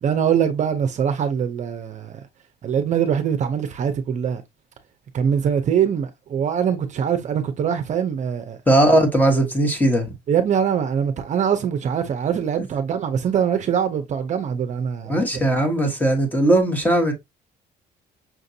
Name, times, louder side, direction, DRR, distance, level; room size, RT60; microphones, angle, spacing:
voice 1, 0.0-2.2 2.6-4.4 5.1-8.6 10.3-15.4, right 8 dB, 45° right, 0.6 m, -23 dB
voice 2, 8.7-10.1 15.1-17.1, right 1 dB, 10° left, 1.1 m, -18 dB
5.8 x 2.5 x 2.6 m
cardioid pair, 110°, 17 cm